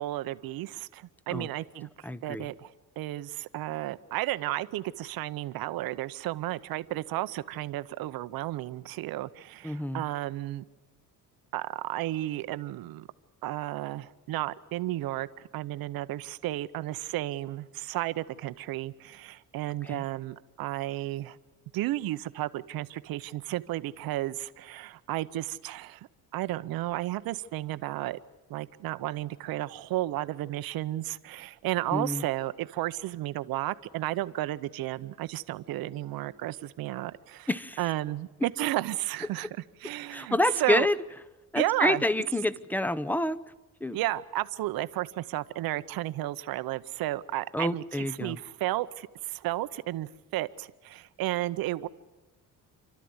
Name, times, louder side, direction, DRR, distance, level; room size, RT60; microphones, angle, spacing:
voice 1, 0.0-1.9 2.2-2.7 3.0-10.6 11.5-13.1 13.4-15.3 15.5-21.4 21.7-28.2 28.5-37.5 37.8-39.5 39.8-40.9 41.6-42.0 43.9-51.9, right 15 dB, 85° right, 14 dB, 0.8 m, -33 dB
voice 2, 2.0-2.5 9.6-10.0 19.8-20.0 31.9-32.2 37.5-37.8 40.1-41.0 41.5-43.4 43.8-44.0 47.5-48.4, left 1 dB, 5° left, 15 dB, 0.7 m, -28 dB
28.5 x 13.0 x 9.6 m, 1.1 s
cardioid pair, 105°, 35 cm